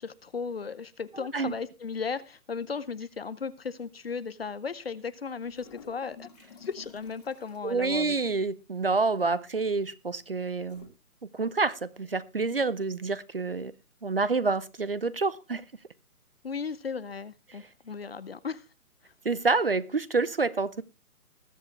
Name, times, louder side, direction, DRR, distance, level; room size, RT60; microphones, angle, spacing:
voice 1, 0.0-6.3 6.6-8.2 16.4-18.6, left 5 dB, 45° left, 0.7 m, -36 dB
voice 2, 1.1-1.5 7.6-10.9 11.3-13.7 14.0-15.6 17.5-17.6 19.2-20.8, right 4 dB, 40° right, 0.6 m, -28 dB
sound 1, 5.5-7.7 9.0-9.4 10.6-10.9, left 6 dB, 25° left, 1.7 m, -52 dB
20.0 x 8.2 x 3.2 m
hypercardioid pair, 175°, 44 cm